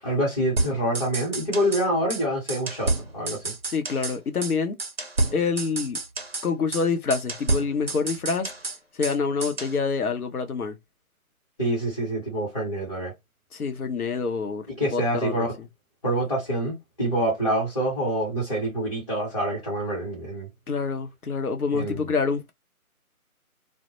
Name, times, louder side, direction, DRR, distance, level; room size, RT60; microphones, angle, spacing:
voice 1, 0.0-3.5 11.6-13.1 14.8-15.5 16.0-20.5 21.7-22.1, right 1 dB, 25° left, 0.9 m, -26 dB
sound 1, 0.6-1.8 2.1-2.2 2.5-4.2 4.4-4.5 4.8-6.5 6.7-6.8 7.1-9.2 9.4-9.8, right 2 dB, 45° right, 0.5 m, -29 dB
voice 2, 3.7-4.8 5.3-6.0 6.4-8.5 9.0-10.8 13.5-14.6 14.9-15.5 20.7-22.5, left 5 dB, 80° left, 0.8 m, -26 dB
2.1 x 2.1 x 2.8 m
figure-of-eight pair, 155°, 43 cm